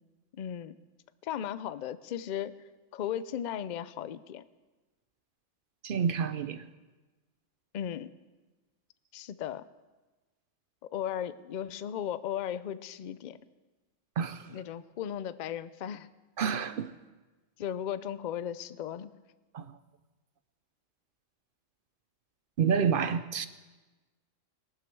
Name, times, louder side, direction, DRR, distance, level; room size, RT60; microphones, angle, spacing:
voice 1, 0.3-0.8 1.2-2.5 2.9-4.4 7.7-8.1 9.1-9.6 10.9-13.4 14.5-16.1 17.6-19.1, left 10 dB, 60° left, 15 dB, 0.5 m, -36 dB
voice 2, 5.8-6.6 14.2-14.5 16.4-16.9 19.5-19.7 22.6-23.5, right 7 dB, 60° right, 12 dB, 0.6 m, -29 dB
18.5 x 12.0 x 4.6 m, 1.2 s
omnidirectional pair, 1.3 m